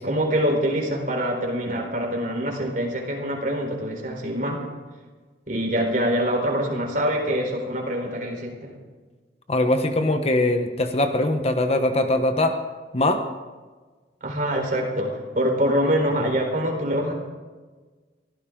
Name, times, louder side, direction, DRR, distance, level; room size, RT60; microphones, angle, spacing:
voice 1, 0.0-4.6 5.5-8.7 14.2-17.1, equal, 50° right, 1 dB, 4.1 m, -25 dB
voice 2, 9.5-12.6 12.9-13.2 16.1-16.3, left 1 dB, 35° left, 6 dB, 1.2 m, -22 dB
23.5 x 16.0 x 3.9 m, 1.4 s
head